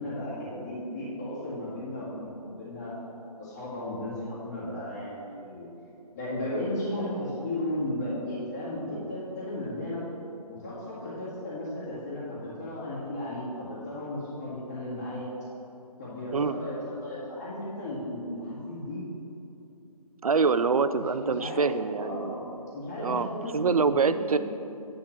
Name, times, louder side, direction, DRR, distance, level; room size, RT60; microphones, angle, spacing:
voice 1, 0.0-2.9 3.4-5.7 6.1-10.0 10.5-15.3 16.0-19.0 20.9-22.5 22.7-24.4, left 1 dB, 25° left, -12 dB, 1.7 m, -35 dB
voice 2, 20.2-22.3 23.0-23.3 23.5-24.4, right 5 dB, 60° right, 12 dB, 0.4 m, -25 dB
10.0 x 3.7 x 7.2 m, 2.8 s
figure-of-eight pair, 150°, 21 cm